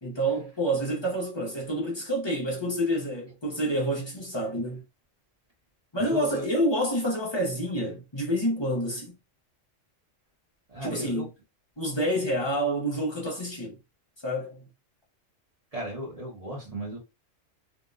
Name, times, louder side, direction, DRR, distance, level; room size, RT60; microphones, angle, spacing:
voice 1, 0.0-4.8 5.9-9.2 10.8-11.3 11.8-13.8 14.2-14.6, equal, 30° left, 0.5 m, -28 dB
voice 2, 6.0-6.5 10.7-11.3 15.7-17.0, right 1 dB, 35° right, 0.9 m, -36 dB
2.7 x 2.1 x 2.3 m
omnidirectional pair, 1.3 m